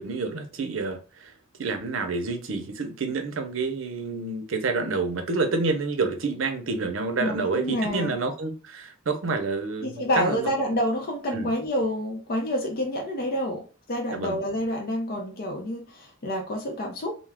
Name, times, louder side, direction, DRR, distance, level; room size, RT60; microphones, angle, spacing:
voice 1, 0.0-1.3 1.6-10.5 11.3-11.5 14.1-14.4, right 3 dB, 75° right, 0.6 m, -28 dB
voice 2, 7.2-8.1 9.8-17.1, equal, 50° left, 0.5 m, -28 dB
2.3 x 2.0 x 3.3 m
head